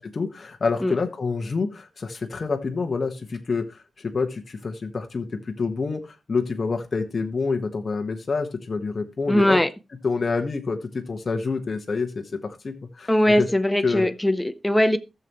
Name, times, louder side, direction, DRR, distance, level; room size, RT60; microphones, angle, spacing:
voice 1, 0.0-9.6 10.0-13.5 13.8-14.1, left 4 dB, 40° left, 1.2 m, -27 dB
voice 2, 9.3-9.7 13.1-15.0, left 1 dB, 5° left, 0.6 m, -20 dB
15.0 x 6.8 x 3.0 m
wide cardioid pair, 175°, 0 cm